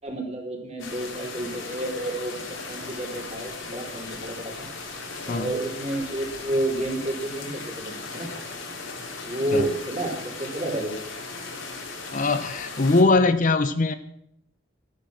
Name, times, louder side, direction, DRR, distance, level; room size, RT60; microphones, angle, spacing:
voice 1, 0.0-4.7 5.2-8.3 9.2-10.9, right 1 dB, 35° right, 0 dB, 3.7 m, -30 dB
sound 1, 0.8-13.0, left 3 dB, 90° left, 3.3 m, -37 dB
voice 2, 12.1-13.9, left 3 dB, 40° left, 11 dB, 0.7 m, -21 dB
14.5 x 10.0 x 6.4 m, 0.78 s
head